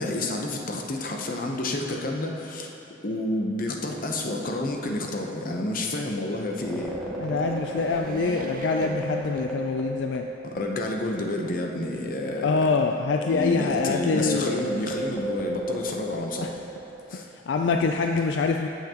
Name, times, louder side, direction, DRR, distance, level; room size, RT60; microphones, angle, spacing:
voice 1, 0.0-2.7 3.0-7.0 10.4-12.7 13.3-16.5 17.1-17.3, left 1 dB, 50° left, 1 dB, 0.8 m, -29 dB
sound 1, 6.5-11.4 11.6-11.8 12.4-17.1, right 1 dB, 5° left, 0.9 m, -35 dB
sound 2, 6.6-10.2 10.7-10.8 11.8-12.6, right 3 dB, 50° right, 0.4 m, -41 dB
voice 2, 7.2-10.3 12.4-14.6 16.4-16.5 17.5-18.7, left 4 dB, 75° left, 3 dB, 0.4 m, -25 dB
16.0 x 5.8 x 2.9 m, 2.7 s
head